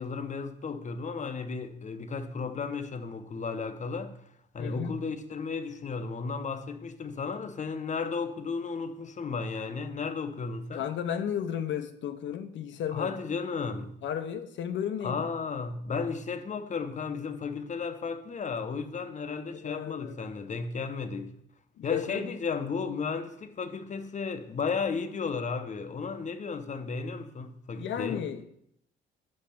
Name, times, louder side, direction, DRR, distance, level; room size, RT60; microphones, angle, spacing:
voice 1, 0.0-4.1 4.5-10.8 12.9-13.9 15.0-21.3 21.8-28.2, left 5 dB, 40° left, 0.8 m, -34 dB
voice 2, 4.6-4.9 10.7-13.1 14.0-15.3 19.5-20.3 21.8-22.3 27.8-28.4, left 9 dB, 70° left, 0.7 m, -33 dB
5.6 x 5.4 x 5.8 m
cardioid pair, 90°, 20 cm